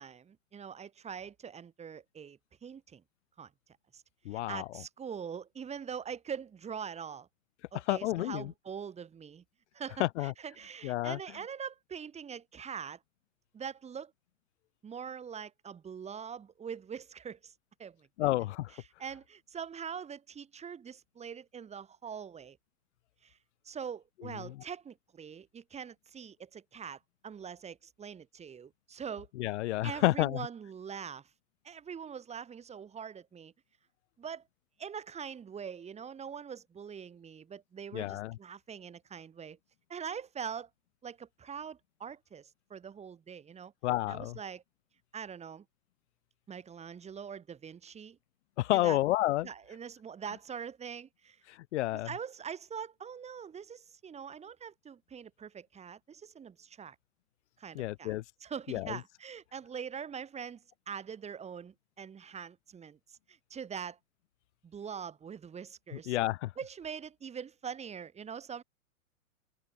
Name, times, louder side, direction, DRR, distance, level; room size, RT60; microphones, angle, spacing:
voice 1, 0.0-3.0 3.4-3.5 3.9-4.0 4.3-7.3 7.7-9.4 9.7-13.0 13.5-14.1 14.8-17.5 17.8-18.3 18.7-22.6 23.2-23.4 23.6-29.3 29.8-31.3 31.6-33.5 34.2-34.4 34.8-39.6 39.9-40.7 41.0-43.7 44.1-44.6 45.1-45.6 46.5-48.2 48.7-49.0 49.4-51.4 51.9-56.9 57.6-64.0 64.6-66.2 66.6-68.6, right 7 dB, 15° right, 6.7 m, -43 dB
voice 2, 4.2-4.6 7.9-8.5 10.0-10.3 10.8-11.2 18.2-18.7 24.4-24.5 29.4-30.4 37.9-38.4 43.8-44.4 48.6-49.5 51.7-52.1 57.7-58.2 58.7-59.0 65.9-66.5, left 16 dB, 55° left, 3.1 m, -30 dB
open air
hypercardioid pair, 140°, 42 cm